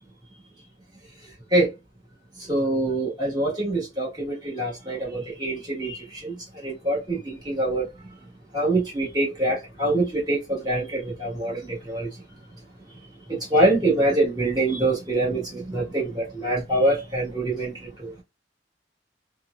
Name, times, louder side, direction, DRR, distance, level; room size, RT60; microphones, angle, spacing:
voice 1, 2.5-6.3 6.6-7.9 8.5-12.1 13.3-17.7 18.0-18.2, right 1 dB, 25° right, 1.3 m, -24 dB
3.0 x 2.0 x 2.3 m
head